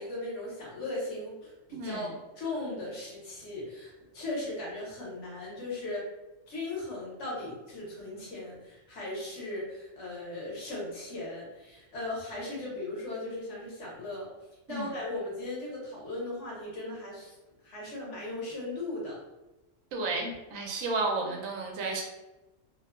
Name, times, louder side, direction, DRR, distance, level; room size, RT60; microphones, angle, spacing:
voice 1, 0.0-6.1 6.5-14.3 14.7-17.3 17.6-19.2, left 2 dB, 65° left, -5 dB, 1.2 m, -37 dB
voice 2, 1.7-2.1 14.7-14.9 19.9-22.0, right 3 dB, 85° right, 0 dB, 1.0 m, -32 dB
2.9 x 2.1 x 2.3 m, 1.0 s
omnidirectional pair, 1.4 m